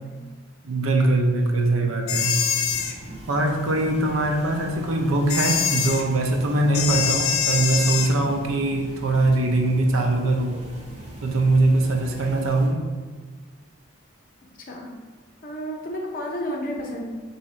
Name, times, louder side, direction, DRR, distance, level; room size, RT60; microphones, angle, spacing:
voice 1, 0.6-2.4 3.3-10.6 11.2-12.8, right 2 dB, 75° right, 2 dB, 0.6 m, -22 dB
sound 1, 2.1-2.9 5.3-6.0 6.7-8.1, left 7 dB, 90° left, 0.4 m, -24 dB
sound 2, 2.6-12.7, right 1 dB, 35° right, 0.7 m, -40 dB
voice 2, 14.6-15.0 15.4-17.0, equal, 40° left, 0 dB, 0.6 m, -31 dB
3.7 x 2.8 x 4.3 m, 1.4 s
head